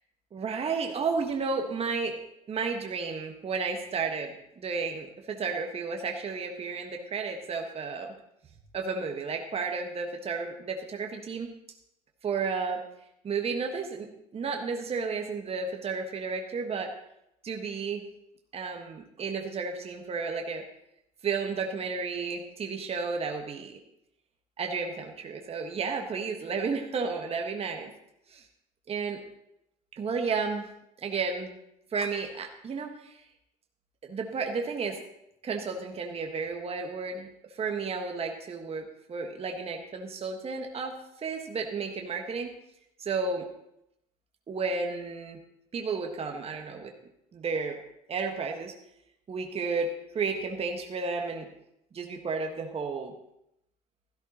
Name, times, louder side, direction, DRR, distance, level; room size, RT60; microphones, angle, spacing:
voice 1, 0.3-2.2 2.5-8.1 8.7-11.5 12.2-12.8 13.2-16.9 17.4-18.0 18.5-20.6 21.2-23.8 24.6-27.9 28.3-28.4 28.9-29.2 29.9-30.7 31.0-31.5 31.9-33.2 34.0-35.0 35.4-42.5 43.0-43.5 44.5-45.4 45.7-46.9 47.3-47.8 48.1-48.7 49.3-51.5 51.9-53.1, right 4 dB, 30° right, 3 dB, 1.4 m, -32 dB
15.5 x 13.5 x 2.9 m, 0.80 s
figure-of-eight pair, 60°, 19 cm